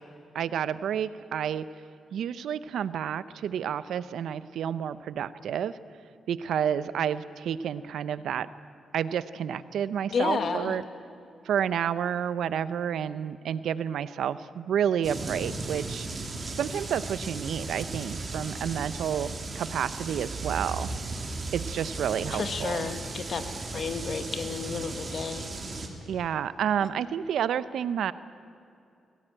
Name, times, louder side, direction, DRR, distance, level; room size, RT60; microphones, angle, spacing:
voice 1, 0.3-1.7 2.1-5.8 6.3-8.5 8.9-10.8 11.4-16.1 16.5-20.9 21.5-22.9 26.1-28.1, right 8 dB, 80° right, 15 dB, 0.6 m, -30 dB
voice 2, 10.1-10.8 22.3-23.5 23.7-25.5, left 5 dB, 55° left, 8 dB, 1.7 m, -31 dB
sound 1, 15.0-25.9, right 3 dB, 35° right, 2.7 m, -36 dB
21.5 x 17.5 x 9.0 m, 2.5 s
cardioid pair, 110°, 0 cm